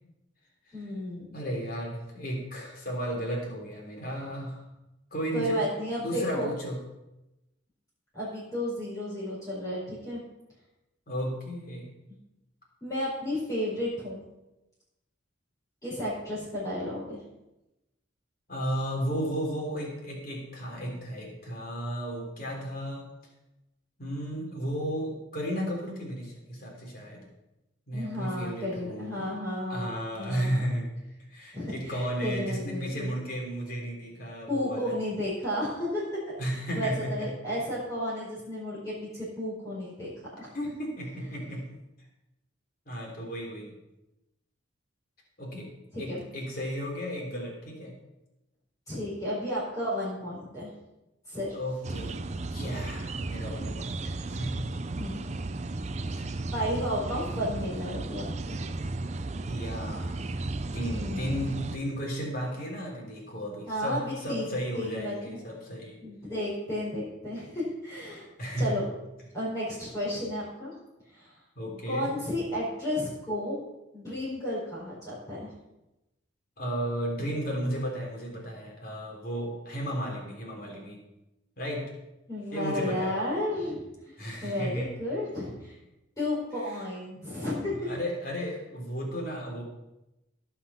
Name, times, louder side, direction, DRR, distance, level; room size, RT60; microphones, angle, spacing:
voice 1, 0.7-1.3 5.3-6.5 8.1-10.2 12.8-14.2 15.8-17.2 27.9-29.9 30.2-30.6 31.5-33.1 34.5-36.0 36.7-40.1 40.4-40.5 45.9-46.2 48.9-50.7 51.3-51.5 55.0-55.4 56.5-58.6 61.0-61.3 63.7-64.5 64.7-65.4 66.0-68.3 68.6-68.8 69.3-70.7 71.1-71.3 71.9-73.6 73.9-75.5 82.3-84.1 84.4-85.8 86.2-87.9, left 1 dB, 15° left, -8 dB, 4.8 m, -32 dB
voice 2, 1.3-4.7 5.1-5.7 6.0-6.8 11.1-11.9 18.5-23.1 24.0-27.3 27.9-29.3 29.7-30.9 31.3-34.9 36.4-37.3 40.5-41.7 42.9-43.7 45.4-45.7 46.0-47.9 51.5-52.2 52.5-54.8 56.2-56.4 59.4-60.2 60.7-66.0 68.4-68.8 71.6-72.1 76.6-81.0 81.6-81.9 82.5-83.2 84.2-84.9 86.6-86.8 87.8-89.6, equal, 45° left, -2 dB, 3.6 m, -34 dB
sound 1, 51.8-61.8, right 2 dB, 35° right, 0.5 m, -34 dB
17.0 x 6.0 x 5.7 m, 0.96 s
head